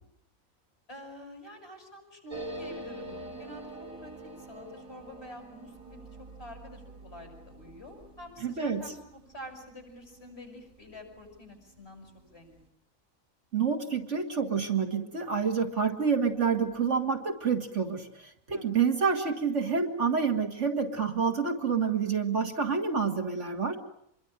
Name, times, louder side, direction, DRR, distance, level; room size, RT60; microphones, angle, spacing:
voice 1, 0.9-6.1 6.4-12.6 18.5-18.7, left 1 dB, 45° left, 4 dB, 7.4 m, -47 dB
sound 1, 2.3-11.4 11.7-11.8 12.0-12.6, right 1 dB, 75° right, 3.4 m, -46 dB
voice 2, 8.4-8.8 13.5-18.1 18.5-23.8, right 6 dB, 60° right, 4 dB, 2.4 m, -28 dB
27.0 x 22.5 x 8.9 m, 0.72 s
omnidirectional pair, 1.5 m